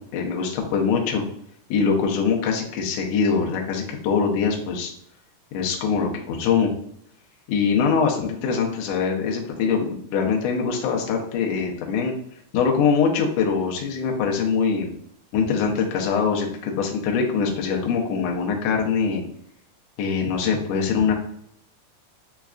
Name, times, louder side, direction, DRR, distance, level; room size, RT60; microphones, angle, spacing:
voice 1, 0.1-1.2 1.7-4.9 5.5-6.7 7.5-12.1 12.5-14.9 15.3-19.2 20.0-21.1, left 5 dB, 85° left, 0 dB, 1.5 m, -23 dB
5.1 x 2.3 x 2.3 m, 0.68 s
omnidirectional pair, 3.7 m